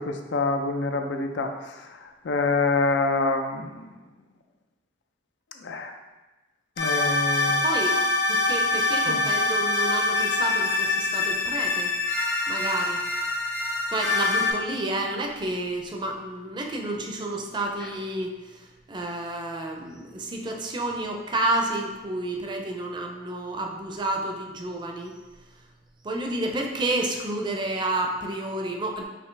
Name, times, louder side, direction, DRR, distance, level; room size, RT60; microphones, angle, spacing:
voice 1, 0.0-1.5 2.2-3.8 5.6-5.9 6.8-7.6 9.1-9.2, left 3 dB, 90° left, 5 dB, 0.5 m, -26 dB
sound 1, 6.8-14.5, left 3 dB, 60° left, 1.3 m, -25 dB
voice 2, 7.6-8.0 8.3-11.9 12.5-13.0 13.9-25.1 26.0-29.0, right 2 dB, 25° right, 2 dB, 0.5 m, -30 dB
5.2 x 2.6 x 3.2 m, 1.1 s
head